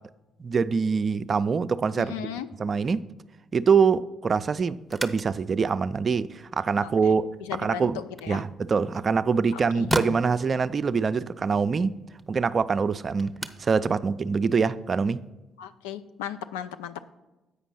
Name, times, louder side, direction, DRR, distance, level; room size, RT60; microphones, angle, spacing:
voice 1, 0.4-2.1 2.6-3.0 3.5-7.3 7.6-8.0 8.3-11.9 12.3-13.3 13.6-15.2, right 5 dB, 45° right, 14 dB, 0.3 m, -24 dB
voice 2, 2.0-2.5 6.8-7.1 7.5-8.4 9.5-9.9 15.6-17.1, left 10 dB, 85° left, 10 dB, 0.3 m, -36 dB
sound 1, 4.8-15.3, right 1 dB, 5° right, 0.7 m, -39 dB
8.2 x 5.1 x 5.7 m, 1.1 s
hypercardioid pair, 55°, 0 cm